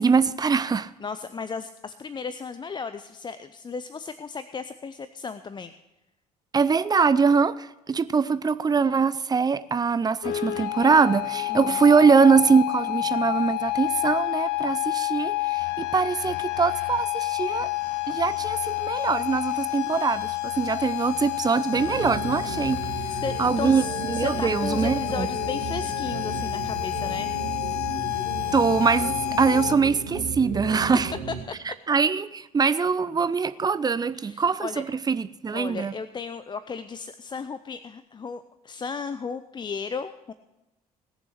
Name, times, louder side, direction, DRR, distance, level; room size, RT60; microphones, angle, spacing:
voice 1, 0.0-0.9 6.5-17.7 18.1-22.9 23.4-25.3 28.5-31.1 31.9-35.9, right 5 dB, 20° right, 0.6 m, -23 dB
voice 2, 1.0-5.7 11.5-11.9 23.1-27.3 31.3-31.6 34.1-34.8 35.5-40.3, left 5 dB, 25° left, 0.6 m, -35 dB
sound 1, 10.2-29.7, left 19 dB, 55° left, 0.7 m, -29 dB
sound 2, 21.7-31.4, right 5 dB, 80° right, 1.6 m, -34 dB
18.5 x 7.0 x 6.7 m
figure-of-eight pair, 50°, 19 cm